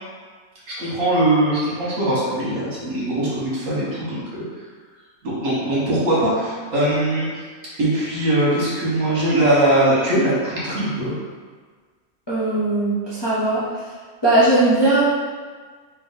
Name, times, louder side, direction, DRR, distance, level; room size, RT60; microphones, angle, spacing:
voice 1, 0.7-4.4 5.2-7.3 7.8-11.1, right 1 dB, 65° right, -7 dB, 1.6 m, -21 dB
voice 2, 12.3-13.6 14.2-15.0, right 2 dB, 25° left, -10 dB, 0.6 m, -18 dB
3.4 x 3.0 x 3.9 m, 1.5 s
omnidirectional pair, 1.5 m